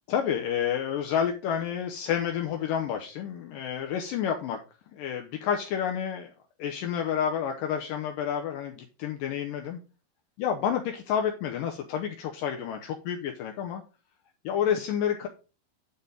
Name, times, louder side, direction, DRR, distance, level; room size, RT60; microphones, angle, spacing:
voice 1, 0.1-4.6 4.9-6.3 6.6-9.8 10.4-13.8 14.4-15.3, left 8 dB, 75° left, 3 dB, 2.1 m, -29 dB
9.7 x 4.3 x 5.1 m, 0.34 s
omnidirectional pair, 4.5 m